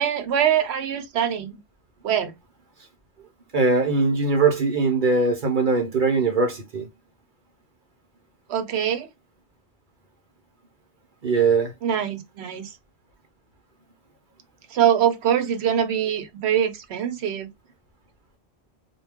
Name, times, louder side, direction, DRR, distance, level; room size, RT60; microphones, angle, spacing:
voice 1, 0.0-1.6 2.0-2.3 8.5-9.1 11.8-12.7 14.7-17.5, right 9 dB, 85° right, 0.9 m, -23 dB
voice 2, 3.5-6.9 11.2-11.7, right 4 dB, 55° right, 0.8 m, -21 dB
2.2 x 2.2 x 3.3 m
omnidirectional pair, 1.1 m